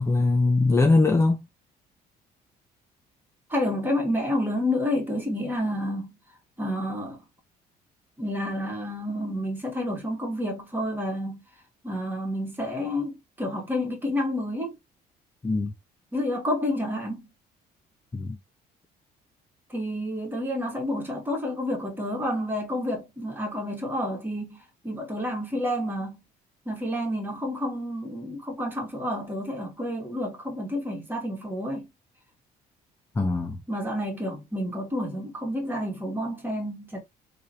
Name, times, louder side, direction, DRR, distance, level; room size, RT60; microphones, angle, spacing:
voice 1, 0.0-1.4 15.4-15.7 18.1-18.4 33.2-33.6, left 3 dB, 15° left, 0.7 m, -21 dB
voice 2, 3.5-6.1 6.6-7.2 8.2-11.4 11.8-14.8 16.1-17.3 19.7-26.2 26.7-31.9 33.7-37.0, left 1 dB, 10° right, 2.0 m, -29 dB
3.6 x 3.4 x 2.7 m
cardioid pair, 110°, 17 cm